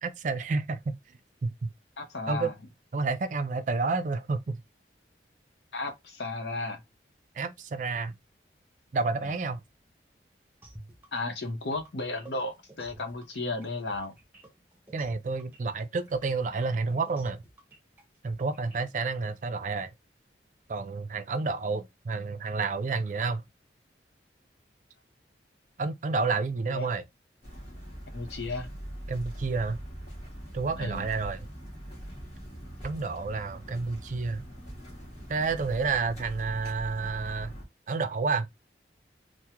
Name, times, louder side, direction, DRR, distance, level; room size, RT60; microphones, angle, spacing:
voice 1, 0.0-1.0 1.4-1.7 2.3-2.5 2.9-4.6 7.4-8.1 8.9-9.6 14.9-17.4 18.2-19.9 20.7-23.4 25.8-27.0 29.1-29.8 30.5-31.4 32.8-34.5 35.3-37.5 37.9-38.5, right 4 dB, 45° right, 0.4 m, -30 dB
voice 2, 2.0-2.5 5.7-6.8 11.1-14.1 26.7-26.9 28.1-28.7 30.8-31.1, left 2 dB, 80° left, 0.8 m, -34 dB
sound 1, 10.6-19.3, right 1 dB, 10° right, 0.7 m, -52 dB
sound 2, 27.4-37.7, equal, 40° left, 1.4 m, -42 dB
3.5 x 2.1 x 2.9 m
head